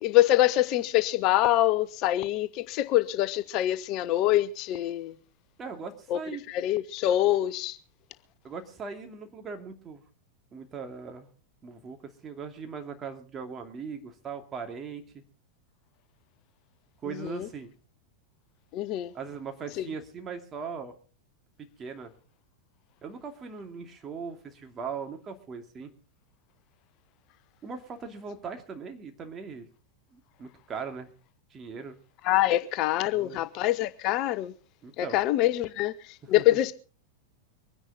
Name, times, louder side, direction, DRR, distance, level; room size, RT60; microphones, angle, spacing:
voice 1, 0.0-5.1 6.1-6.2 6.5-7.8 17.2-17.5 18.7-19.1 19.8-19.9 32.2-34.5 35.0-35.9 36.3-36.7, left 14 dB, 40° left, 0.8 m, -25 dB
voice 2, 5.6-6.4 8.4-10.0 10.5-11.3 11.6-15.2 17.0-17.7 19.1-20.9 21.8-22.1 23.0-25.9 27.6-29.7 30.1-31.1 31.5-32.0 33.1-33.5 34.8-35.2 36.4-36.6, right 5 dB, 25° right, 2.6 m, -39 dB
24.0 x 10.0 x 4.1 m
figure-of-eight pair, 90°, 0 cm